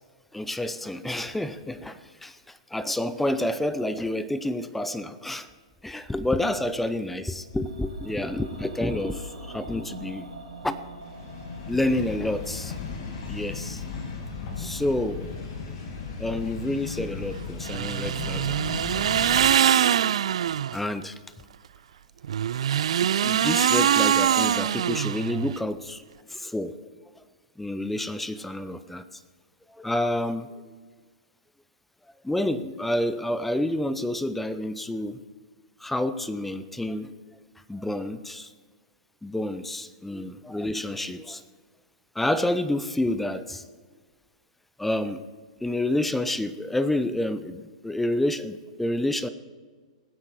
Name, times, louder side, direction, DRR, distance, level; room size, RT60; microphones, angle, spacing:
voice 1, 0.3-2.4 2.7-5.5 5.8-10.3 10.6-10.8 11.7-12.7 13.3-13.8 14.6-15.2 16.2-19.5 20.7-21.1 23.2-26.0 26.3-26.8 27.6-29.0 29.8-30.5 32.2-35.2 35.8-37.1 37.7-38.5 39.2-41.4 42.2-43.6 44.8-45.2 45.6-49.3, left 1 dB, 5° left, 13 dB, 0.6 m, -29 dB
sound 1, 7.4-17.5 17.8-17.9, right 1 dB, 90° right, 3.7 m, -45 dB
sound 2, 11.0-19.5, left 5 dB, 50° left, 2.6 m, -36 dB
sound 3, 17.6-20.8 22.2-25.6, right 9 dB, 65° right, 0.3 m, -23 dB
20.5 x 8.3 x 4.7 m, 1.5 s
hypercardioid pair, 115°, 3 cm